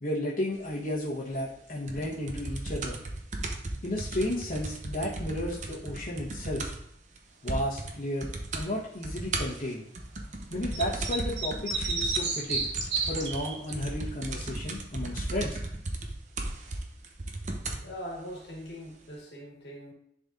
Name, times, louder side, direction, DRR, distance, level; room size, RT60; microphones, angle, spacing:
voice 1, 0.0-3.0 3.8-6.7 7.4-9.8 10.5-12.7 13.0-15.6, left 1 dB, 50° left, -7 dB, 1.1 m, -33 dB
Laptop typing, 1.9-6.9 7.2-7.3 7.5-7.9 8.2-8.7 9.0-17.9 18.7-18.8, right 2 dB, 45° right, 0.8 m, -36 dB
sound 1, 10.7-13.9, right 4 dB, 90° right, 1.1 m, -31 dB
voice 2, 17.8-19.9, equal, 70° left, 0 dB, 1.7 m, -41 dB
10.5 x 4.1 x 2.6 m, 0.73 s
head